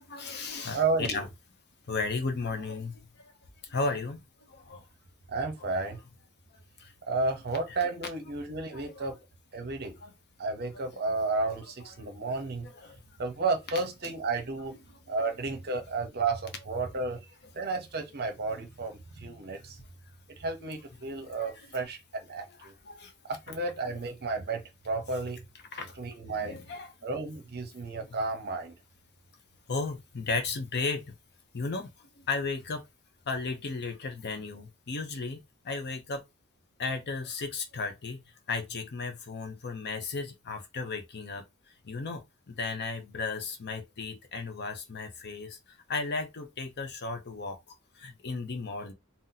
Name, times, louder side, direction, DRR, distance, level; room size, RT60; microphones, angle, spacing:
voice 1, 0.1-1.3 1.9-3.3 3.7-4.2 4.5-4.8 5.6-5.7 6.8-6.9 7.7-7.8 8.7-9.0 10.0-10.1 10.7-10.8 12.0-12.3 12.6-13.0 17.6-17.7 21.1-21.5 22.6-23.1 25.7-26.0 26.3-26.9 29.7-31.0 31.5-31.9 32.2-32.9 33.3-36.2 36.8-41.4 41.8-48.9, left 4 dB, 50° left, 0.7 m, -35 dB
voice 2, 0.7-1.3 5.3-6.0 7.1-9.2 9.5-9.9 10.4-12.7 13.2-14.8 15.1-17.2 17.5-19.8 20.4-22.7 23.3-25.4 26.0-26.6 27.0-28.8, right 3 dB, 45° right, 0.7 m, -32 dB
2.8 x 2.0 x 3.8 m
head